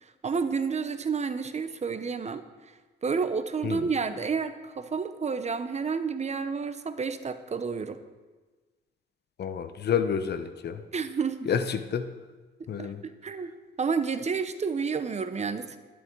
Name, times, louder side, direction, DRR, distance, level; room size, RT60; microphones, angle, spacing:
voice 1, 0.2-2.4 3.0-8.0 10.9-11.5 12.8-13.5 13.8-15.8, right 5 dB, 35° right, 10 dB, 1.0 m, -30 dB
voice 2, 9.4-10.8 11.5-12.1 12.7-13.0, left 7 dB, 55° left, 10 dB, 1.0 m, -29 dB
12.5 x 11.5 x 4.7 m, 1.3 s
cardioid pair, 90°, 20 cm